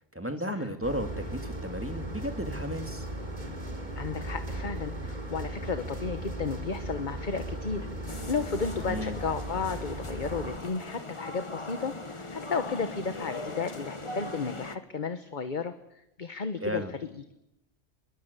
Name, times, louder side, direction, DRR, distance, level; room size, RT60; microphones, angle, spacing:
voice 1, 0.1-3.1 8.9-9.1 16.6-16.9, equal, 10° right, 6 dB, 2.4 m, -34 dB
sound 1, 0.8-10.6, right 1 dB, 45° right, 4.1 m, -37 dB
voice 2, 3.9-15.8 16.2-16.8, left 5 dB, 45° left, 10 dB, 1.3 m, -33 dB
sound 2, 8.1-14.8, left 2 dB, 30° left, 1.5 m, -40 dB
25.5 x 22.5 x 8.2 m, 0.85 s
omnidirectional pair, 1.1 m